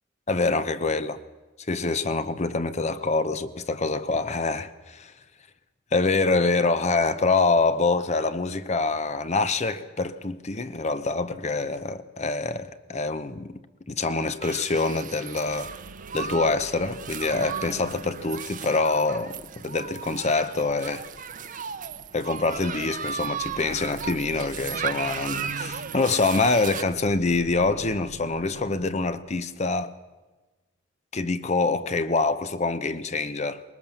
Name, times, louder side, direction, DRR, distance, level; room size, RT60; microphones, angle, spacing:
voice 1, 0.3-1.2 1.7-5.1 5.9-13.6 13.9-15.7 16.1-21.0 22.1-29.9 31.1-33.6, left 3 dB, 35° left, 0.7 m, -25 dB
sound 1, 14.4-26.8, right 7 dB, 45° right, 0.9 m, -36 dB
sound 2, 15.4-20.3 22.4-29.4, right 2 dB, 75° right, 0.7 m, -45 dB
20.5 x 19.0 x 7.0 m
head